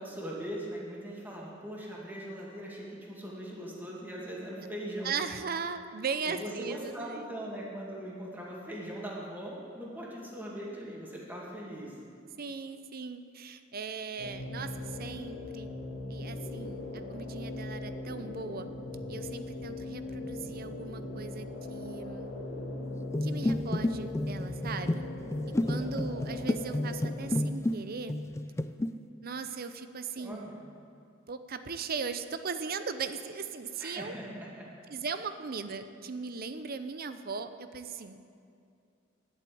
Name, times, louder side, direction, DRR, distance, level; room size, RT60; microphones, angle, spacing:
voice 1, 0.0-5.1 6.2-11.9 25.6-26.1 30.2-30.6 33.8-34.7, right 1 dB, 10° right, -4 dB, 2.4 m, -40 dB
voice 2, 5.0-7.3 12.4-15.7 16.1-18.7 19.1-22.4 23.2-24.9 25.7-28.1 29.2-30.5 31.3-34.1 34.9-38.2, right 5 dB, 50° right, 10 dB, 0.6 m, -38 dB
sound 1, 14.2-27.4, left 2 dB, 65° left, 2.1 m, -39 dB
sound 2, 23.1-27.8 28.1-28.9, left 1 dB, 15° left, 0.4 m, -31 dB
10.5 x 8.6 x 8.6 m, 2.5 s
head